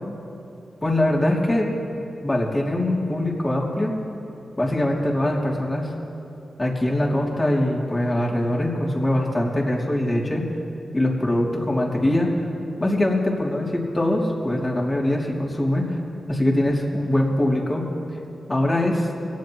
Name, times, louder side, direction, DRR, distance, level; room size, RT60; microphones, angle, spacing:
voice 1, 0.8-3.9 4.6-5.9 6.6-10.4 10.9-12.3 12.8-16.0 16.3-17.8 18.5-19.1, left 1 dB, 25° left, -2 dB, 3.0 m, -22 dB
23.5 x 17.5 x 3.2 m, 2.7 s
cardioid pair, 65°, 0 cm